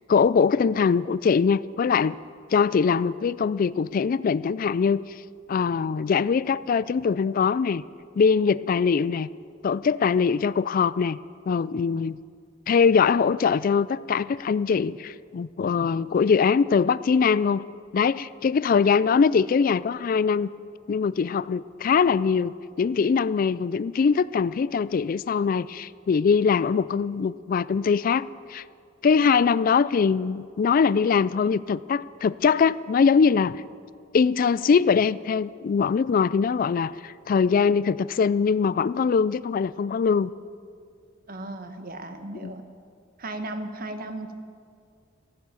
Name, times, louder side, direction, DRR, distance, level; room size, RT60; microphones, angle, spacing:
voice 1, 0.1-2.2 2.5-5.0 5.5-7.8 8.2-9.3 9.6-11.2 11.5-12.2 12.7-17.6 17.9-20.5 20.9-22.5 22.8-28.6 29.0-33.6 34.1-40.3 42.4-42.5, left 5 dB, 45° left, 18 dB, 0.3 m, -22 dB
voice 2, 41.3-42.7 43.2-44.3, right 2 dB, 50° right, 8 dB, 1.2 m, -35 dB
14.5 x 11.0 x 8.3 m, 2.2 s
head